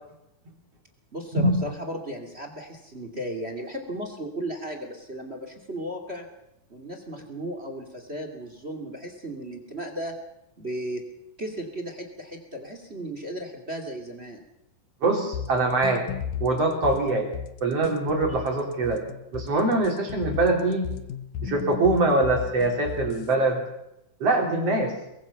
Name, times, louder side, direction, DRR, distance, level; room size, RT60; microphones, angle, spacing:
voice 1, 1.1-6.3 6.7-10.2 10.6-11.1 11.4-14.4, right 1 dB, 20° right, 6 dB, 2.3 m, -35 dB
voice 2, 15.0-16.0 16.4-17.3 17.6-19.0 19.3-20.9 21.4-23.6 24.2-24.9, right 2 dB, 50° right, 1 dB, 4.8 m, -23 dB
sound 1, 15.3-23.3, left 9 dB, 75° left, 2.4 m, -35 dB
23.0 x 22.0 x 5.8 m, 0.86 s
omnidirectional pair, 3.8 m